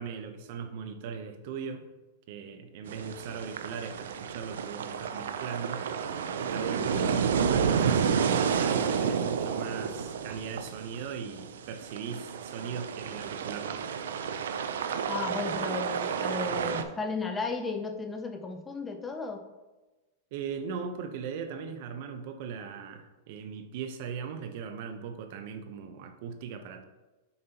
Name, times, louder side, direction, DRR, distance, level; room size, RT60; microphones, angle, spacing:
voice 1, 0.0-1.8 2.3-5.9 6.4-13.8 20.3-26.8, right 6 dB, 55° right, 7 dB, 0.7 m, -39 dB
sound 1, 2.9-16.8, right 7 dB, 85° right, 0.5 m, -30 dB
voice 2, 6.8-7.1 15.1-19.4, left 4 dB, 15° left, 5 dB, 0.5 m, -35 dB
6.6 x 5.3 x 2.9 m, 1.1 s
supercardioid pair, 150°, 0 cm